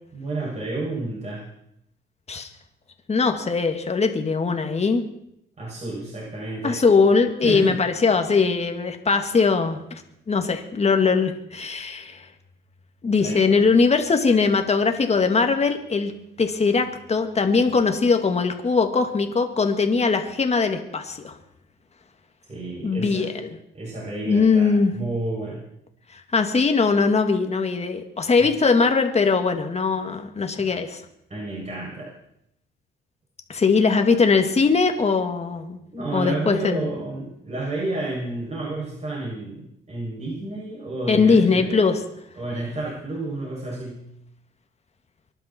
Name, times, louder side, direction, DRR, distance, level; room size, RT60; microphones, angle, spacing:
voice 1, 0.1-1.5 5.6-6.8 7.4-7.8 13.2-13.6 22.5-23.3 23.7-25.6 28.4-28.5 30.6-30.7 31.3-32.1 35.9-41.8 42.4-44.0, right 2 dB, 35° right, -5 dB, 7.5 m, -31 dB
voice 2, 3.1-5.0 6.6-9.8 10.3-12.2 13.0-16.1 16.4-21.4 22.8-23.6 24.2-24.9 26.1-31.0 33.5-35.8 36.1-36.9 41.1-42.0, left 4 dB, 35° left, 6 dB, 2.3 m, -21 dB
24.5 x 11.5 x 4.6 m, 0.78 s
cardioid pair, 90°, 20 cm